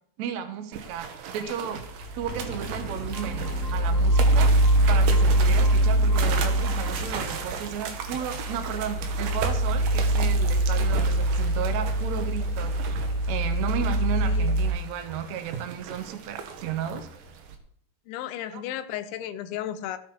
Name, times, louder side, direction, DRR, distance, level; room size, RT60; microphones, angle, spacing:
voice 1, 0.2-1.8 2.2-4.6 4.9-17.1 18.5-18.6, right 9 dB, 80° right, 7 dB, 1.6 m, -34 dB
sound 1, 0.7-17.6, right 6 dB, 65° right, 2.6 m, -37 dB
sound 2, 1.8-14.7, right 1 dB, 50° left, 3.9 m, -24 dB
sound 3, 2.2-8.4, right 2 dB, 5° left, 1.7 m, -39 dB
voice 2, 18.1-20.0, left 11 dB, 80° left, 10 dB, 3.2 m, -34 dB
14.5 x 8.2 x 4.8 m, 0.63 s
omnidirectional pair, 5.3 m